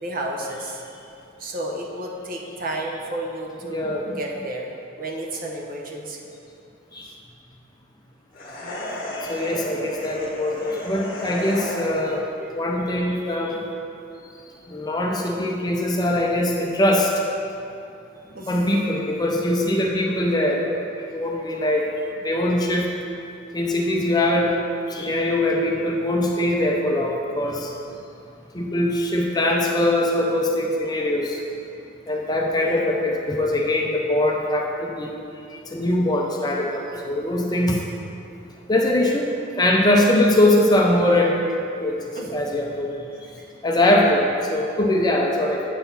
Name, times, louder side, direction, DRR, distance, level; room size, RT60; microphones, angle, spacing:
voice 1, 0.0-0.8 1.4-4.7 4.9-6.2 7.0-7.1 12.6-12.7 18.3-18.5 32.6-33.0 42.1-42.3 43.4-43.5, right 1 dB, 45° right, -1 dB, 0.8 m, -32 dB
voice 2, 3.7-4.1 6.9-7.1 8.9-12.2 12.5-13.6 14.7-17.1 18.5-20.6 21.0-21.9 22.2-22.9 23.5-24.5 24.9-27.7 28.5-31.4 32.1-35.1 35.7-37.8 38.7-39.3 39.6-41.4 41.8-42.0 42.3-42.9 43.6-45.6, left 1 dB, 20° left, 0 dB, 0.5 m, -22 dB
sound 1, 8.3-12.2, left 1 dB, 45° left, 1.1 m, -33 dB
8.0 x 4.0 x 5.6 m, 2.6 s
head